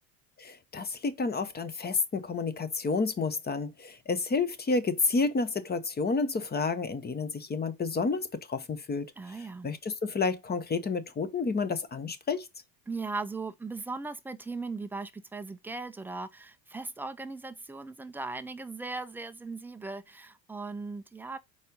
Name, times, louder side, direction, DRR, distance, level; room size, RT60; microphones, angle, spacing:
voice 1, 0.4-9.1 9.6-12.5, left 4 dB, 20° left, 0.8 m, -30 dB
voice 2, 9.2-9.7 12.9-21.4, right 3 dB, 5° right, 0.3 m, -38 dB
4.8 x 4.2 x 5.2 m
supercardioid pair, 100°, 49 cm